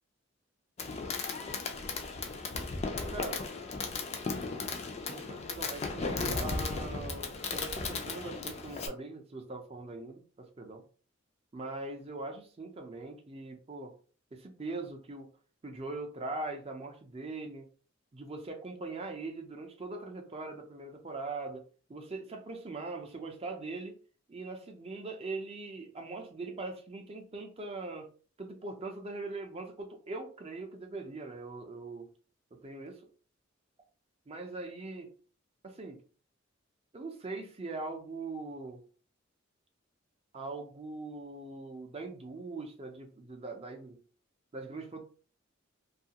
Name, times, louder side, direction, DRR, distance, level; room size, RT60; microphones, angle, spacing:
Fireworks, 0.8-8.9, left 4 dB, 35° left, 0.4 m, -36 dB
voice 1, 3.1-3.5 5.0-10.8 11.5-13.9 14.3-15.3 15.6-17.7 18.1-21.6 21.9-24.0 24.3-28.1 28.4-32.1 32.5-33.0 34.3-35.1 35.6-36.0 36.9-38.8 40.3-44.0 44.5-45.0, right 3 dB, 30° right, 4 dB, 0.5 m, -41 dB
2.7 x 2.4 x 2.8 m, 0.39 s
head